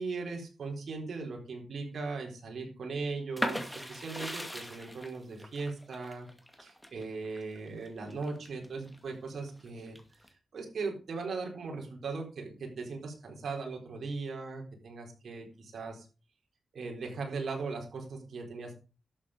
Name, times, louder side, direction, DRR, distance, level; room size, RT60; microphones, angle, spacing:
voice 1, 0.0-6.3 6.6-10.0 10.5-16.1 16.7-18.8, right 4 dB, 70° right, 1 dB, 4.0 m, -38 dB
sound 1, 3.4-9.0 9.4-10.3, equal, 5° left, 2.2 m, -38 dB
12.0 x 7.8 x 5.1 m, 0.33 s
cardioid pair, 90°, 0 cm